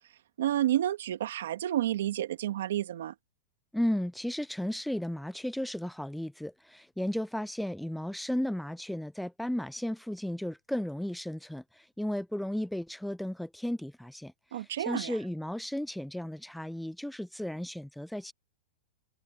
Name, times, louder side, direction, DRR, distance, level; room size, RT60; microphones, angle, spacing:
voice 1, 0.4-3.1 14.5-15.2, right 12 dB, 75° right, 1.9 m, -30 dB
voice 2, 3.7-18.3, left 1 dB, ahead, 0.3 m, -34 dB
hypercardioid pair, 130°, 0 cm